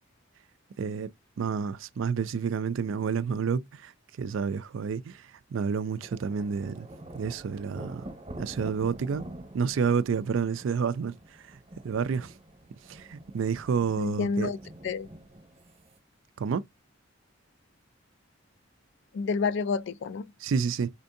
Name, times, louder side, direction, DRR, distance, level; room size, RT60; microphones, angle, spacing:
voice 1, 0.8-1.1 1.4-3.9 4.2-6.9 7.1-8.1 8.4-9.2 9.5-11.6 11.8-12.3 12.9-14.5 16.4-16.6 20.4-20.9, right 6 dB, 70° right, 0.4 m, -29 dB
sound 1, 6.0-16.0, right 1 dB, 30° right, 0.9 m, -46 dB
voice 2, 14.0-14.6 14.8-15.1 19.1-20.3, left 4 dB, 60° left, 0.3 m, -29 dB
4.3 x 2.6 x 2.6 m
head